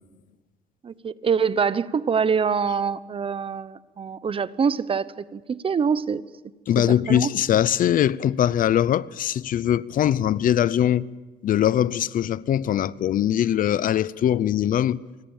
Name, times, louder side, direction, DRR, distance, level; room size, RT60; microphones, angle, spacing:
voice 1, 0.8-6.2 6.9-7.3, right 6 dB, 30° right, 0.9 m, -25 dB
voice 2, 6.7-11.0 11.4-15.0, left 11 dB, 55° left, 0.7 m, -21 dB
26.5 x 25.0 x 7.3 m
cardioid pair, 110°, 17 cm